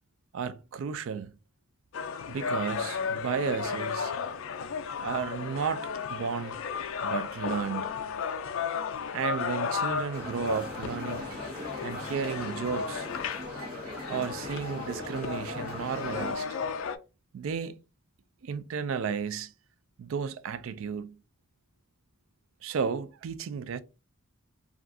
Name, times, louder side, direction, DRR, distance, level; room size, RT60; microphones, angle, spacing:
voice 1, 0.3-1.3 2.3-4.1 5.0-6.6 7.0-7.9 9.1-11.3 11.8-13.1 14.1-16.5 17.3-17.8 18.4-19.5 20.0-21.2 22.6-23.8, right 6 dB, 60° right, 0.3 m, -33 dB
sound 1, 1.9-17.0, left 6 dB, 60° left, 0.3 m, -34 dB
sound 2, 10.1-16.3, left 1 dB, 85° right, 1.0 m, -39 dB
2.4 x 2.3 x 3.6 m
head